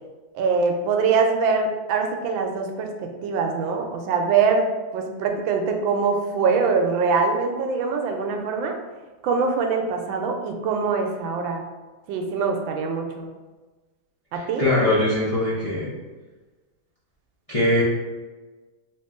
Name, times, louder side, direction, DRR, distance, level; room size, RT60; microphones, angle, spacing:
voice 1, 0.3-4.7 4.9-8.8 9.2-11.6 12.1-13.3 14.3-14.7, right 5 dB, 85° right, 3 dB, 1.3 m, -23 dB
voice 2, 14.3-15.9 17.5-17.8, left 1 dB, 60° left, -9 dB, 0.3 m, -22 dB
3.1 x 2.9 x 3.5 m, 1.3 s
omnidirectional pair, 2.0 m